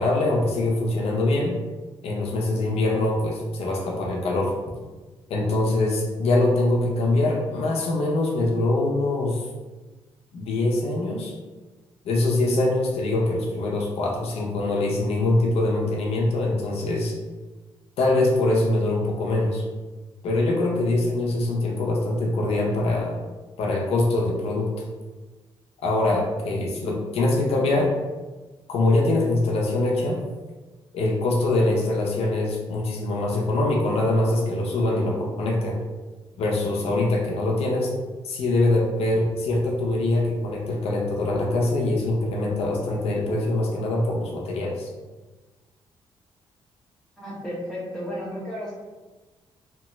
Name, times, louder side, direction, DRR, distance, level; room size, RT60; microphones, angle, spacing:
voice 1, 0.0-1.6 2.0-4.5 5.3-9.5 10.3-11.3 12.0-17.1 18.0-19.6 20.2-23.1 23.6-24.7 25.8-27.9 28.7-30.2 30.9-35.8 36.4-37.9 38.2-44.9, left 2 dB, 80° left, -1 dB, 0.5 m, -23 dB
voice 2, 47.2-48.7, equal, 5° left, -8 dB, 1.1 m, -33 dB
2.9 x 2.2 x 3.0 m, 1.3 s
cardioid pair, 100°, 10 cm